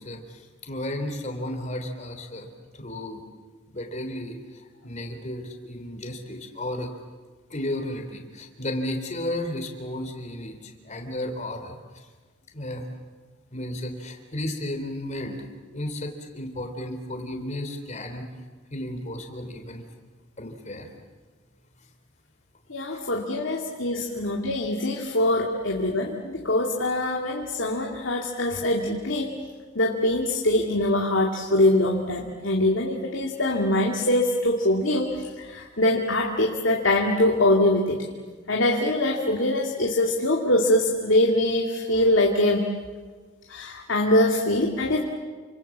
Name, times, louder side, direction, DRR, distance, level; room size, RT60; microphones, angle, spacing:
voice 1, 0.0-3.2 3.7-4.4 4.8-6.9 7.5-11.8 12.5-12.9 13.5-15.4 15.7-18.3 18.7-19.9 20.4-20.9 24.1-24.2, left 1 dB, 35° left, 5 dB, 3.6 m, -33 dB
voice 2, 22.7-29.3 29.8-35.1 35.4-38.0 38.5-42.6 43.5-45.0, left 1 dB, 70° left, 0 dB, 2.4 m, -23 dB
28.5 x 26.0 x 7.4 m, 1.4 s
head